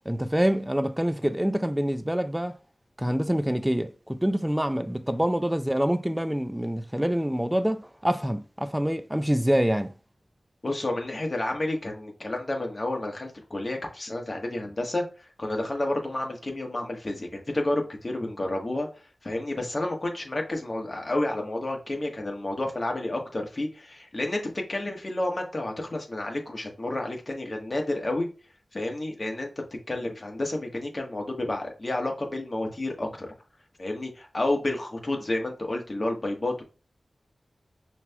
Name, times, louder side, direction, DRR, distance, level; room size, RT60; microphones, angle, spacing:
voice 1, 0.1-2.6 3.0-9.9, equal, 10° right, 0.4 m, -26 dB
voice 2, 10.6-15.0 15.4-18.9 19.2-28.3 28.7-33.3 33.8-36.6, left 1 dB, 40° left, 1.3 m, -30 dB
5.9 x 2.8 x 2.3 m
cardioid pair, 45°, 0 cm